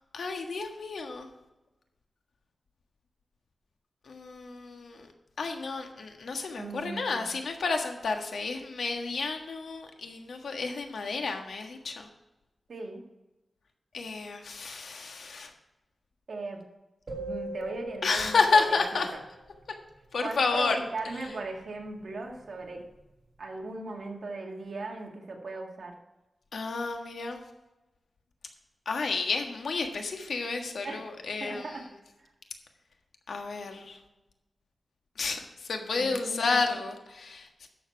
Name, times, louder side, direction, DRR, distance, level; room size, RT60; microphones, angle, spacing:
voice 1, 0.1-1.3 4.1-5.0 5.4-12.1 13.9-15.5 18.0-19.1 20.1-20.8 26.5-27.4 28.9-31.6 33.3-34.0 35.2-35.4 35.7-37.7, left 4 dB, 80° left, 4 dB, 1.5 m, -30 dB
voice 2, 6.6-7.3 12.7-13.0 16.3-16.6 17.2-19.2 20.2-22.8 23.4-25.9 30.8-31.1 31.4-31.9 36.0-36.8, right 3 dB, 65° right, 0 dB, 2.2 m, -38 dB
sound 1, 17.1-19.3, right 1 dB, 40° right, 2.5 m, -40 dB
11.5 x 7.4 x 4.6 m, 1.0 s
wide cardioid pair, 100°, 0 cm